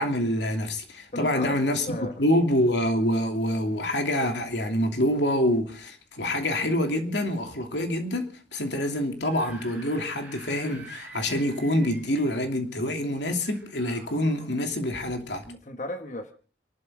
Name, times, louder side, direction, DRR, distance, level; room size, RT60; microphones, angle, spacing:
voice 1, 0.0-15.5, left 1 dB, 90° left, 2.8 m, -26 dB
voice 2, 1.1-2.3 15.5-16.3, left 1 dB, 45° left, 1.3 m, -35 dB
Screaming / Screech, 9.2-12.4 13.4-14.5, right 2 dB, 10° right, 5.4 m, -47 dB
29.0 x 12.0 x 3.7 m
head